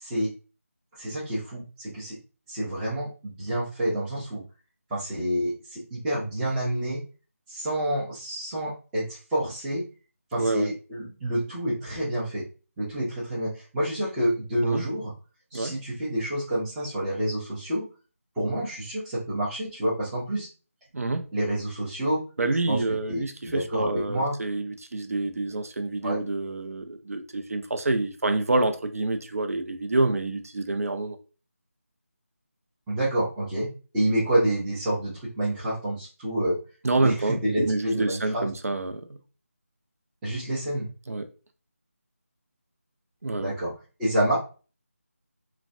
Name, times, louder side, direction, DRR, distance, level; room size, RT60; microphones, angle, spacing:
voice 1, 1.0-2.2 2.5-4.4 4.9-7.0 7.5-9.8 10.3-12.4 12.8-15.1 15.5-17.8 18.4-20.5 21.3-22.2 22.7-22.8 23.1-24.4 26.0-26.2 32.9-33.7 33.9-36.6 37.0-38.4 40.2-40.9 43.4-43.7 44.0-44.4, right 1 dB, 5° right, 0.5 m, -28 dB
voice 2, 10.4-10.7 14.6-14.8 15.5-15.7 20.9-21.2 22.4-31.2 36.8-39.1 41.1-41.3 43.2-43.5, right 2 dB, 75° right, 0.5 m, -27 dB
3.2 x 2.1 x 2.5 m
figure-of-eight pair, 170°, 8 cm